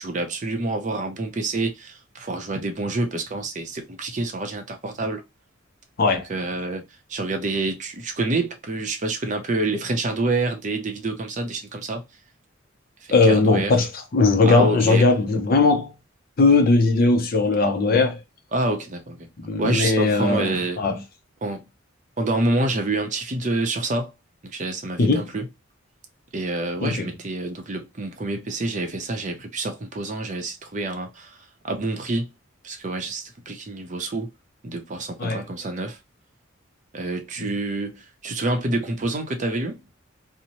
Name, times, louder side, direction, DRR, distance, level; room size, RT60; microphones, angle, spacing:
voice 1, 0.0-5.2 6.1-6.8 7.1-12.0 13.0-13.7 14.4-15.1 18.5-19.3 19.6-20.8 21.4-21.6 22.2-24.1 24.4-25.5 26.3-31.4 31.6-32.3 32.6-34.3 34.6-36.0 36.9-39.8, right 2 dB, 40° right, 0.6 m, -27 dB
voice 2, 13.1-15.9 16.4-18.2 19.4-21.0 25.0-25.3 26.8-27.1 35.2-35.4 37.4-37.5, left 3 dB, 45° left, 0.6 m, -19 dB
2.7 x 2.1 x 2.8 m
head